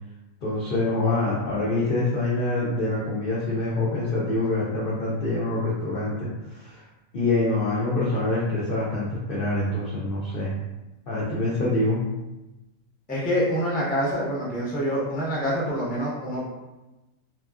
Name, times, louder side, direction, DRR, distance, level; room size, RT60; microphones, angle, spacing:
voice 1, 0.4-6.8 7.1-10.5 11.1-12.0, left 2 dB, 65° left, -7 dB, 0.5 m, -25 dB
voice 2, 13.1-16.4, equal, 10° left, -6 dB, 0.4 m, -26 dB
3.0 x 2.3 x 2.3 m, 1.0 s
omnidirectional pair, 1.5 m